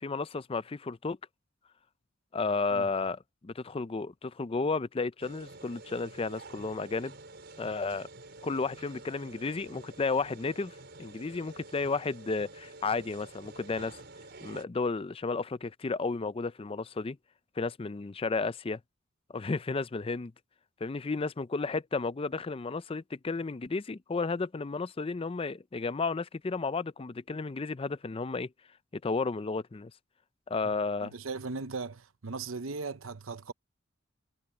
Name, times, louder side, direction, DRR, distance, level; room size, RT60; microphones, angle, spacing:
voice 1, 0.0-1.2 2.3-7.1 7.6-8.1 8.4-14.0 14.4-17.2 17.6-18.8 19.3-20.3 20.8-28.5 28.9-29.9 30.5-31.1, left 4 dB, 30° left, 0.5 m, -33 dB
sound 1, 5.2-14.6, right 2 dB, 55° right, 4.6 m, -49 dB
voice 2, 31.0-33.5, right 4 dB, 85° right, 0.8 m, -38 dB
head